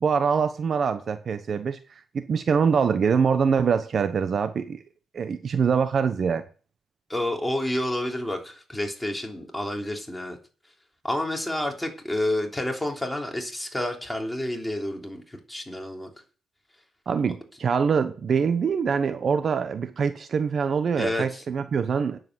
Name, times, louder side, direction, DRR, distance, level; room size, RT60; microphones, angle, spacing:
voice 1, 0.0-1.8 2.1-4.8 5.1-6.4 17.1-22.2, right 6 dB, 50° right, 1.0 m, -24 dB
voice 2, 7.1-10.4 11.0-16.1 21.0-21.4, left 1 dB, 5° left, 3.3 m, -29 dB
9.7 x 7.8 x 7.9 m
cardioid pair, 90°, 0 cm